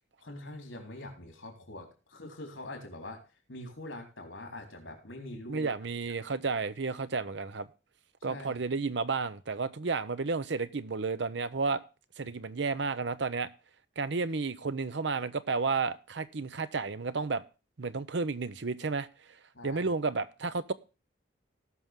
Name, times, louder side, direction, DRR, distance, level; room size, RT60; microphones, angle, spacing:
voice 1, 0.2-3.2 3.5-5.7 6.0-6.1 8.3-8.6 19.5-19.9, left 1 dB, 70° left, 3.9 m, -44 dB
voice 2, 5.5-7.7 8.2-11.8 12.2-13.5 14.0-17.4 17.8-19.1 19.6-20.7, right 4 dB, 65° right, 0.7 m, -32 dB
18.5 x 6.1 x 3.6 m
head